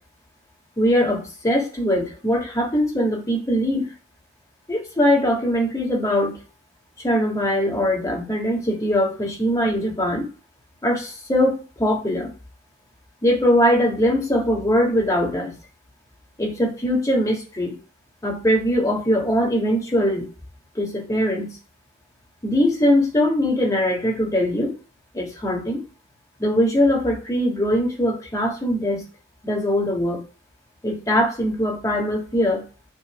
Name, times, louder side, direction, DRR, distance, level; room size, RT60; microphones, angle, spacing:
voice 1, 0.8-3.9 4.7-6.3 7.0-10.3 10.8-12.3 13.2-15.5 16.4-17.7 18.2-20.3 20.8-21.5 22.4-24.7 25.1-25.8 26.4-29.0 29.4-30.2 30.8-32.6, equal, 15° left, 0 dB, 1.8 m, -21 dB
6.8 x 3.1 x 5.7 m, 0.35 s
head